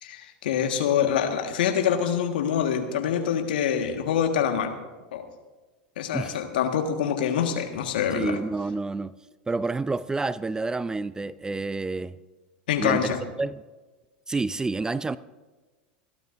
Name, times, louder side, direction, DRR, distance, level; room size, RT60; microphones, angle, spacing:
voice 1, 0.0-4.7 5.1-5.3 6.0-8.4 12.7-13.2, left 8 dB, 70° left, 1.5 m, -25 dB
voice 2, 8.1-9.2 9.5-12.2 12.8-13.1 13.4-13.6 14.3-15.2, right 3 dB, 15° right, 0.4 m, -28 dB
28.0 x 12.0 x 2.6 m
hypercardioid pair, 85°, 5 cm